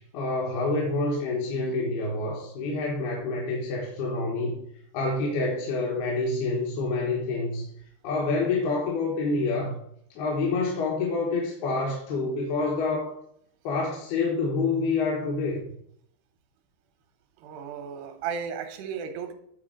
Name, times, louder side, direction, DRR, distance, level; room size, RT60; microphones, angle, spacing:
voice 1, 0.0-4.6 4.9-7.6 8.0-9.8 10.2-13.1 13.6-15.6, left 3 dB, 75° left, -3 dB, 3.1 m, -27 dB
voice 2, 17.4-19.3, right 7 dB, 90° right, 7 dB, 3.0 m, -34 dB
10.0 x 4.1 x 5.0 m, 0.71 s
omnidirectional pair, 4.5 m